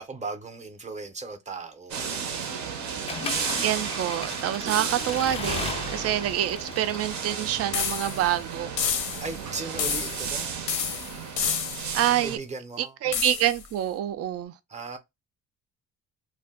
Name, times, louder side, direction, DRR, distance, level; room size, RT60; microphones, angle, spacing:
voice 1, 0.0-2.3 9.2-10.5 12.2-13.2 14.7-15.0, right 3 dB, 25° right, 0.7 m, -37 dB
sound 1, 1.9-12.4, right 6 dB, 70° right, 0.8 m, -33 dB
Accelerating revving vroom / Mechanisms, 3.1-8.0, left 5 dB, 20° left, 0.3 m, -37 dB
voice 2, 3.6-8.7 11.9-12.4 12.8-14.5, right 12 dB, 55° right, 0.4 m, -27 dB
sound 2, 7.7-8.3 8.8-9.4 9.8-10.4 10.7-12.0 13.1-13.6, left 7 dB, 90° left, 0.7 m, -29 dB
2.4 x 2.2 x 3.6 m
cardioid pair, 90°, 30 cm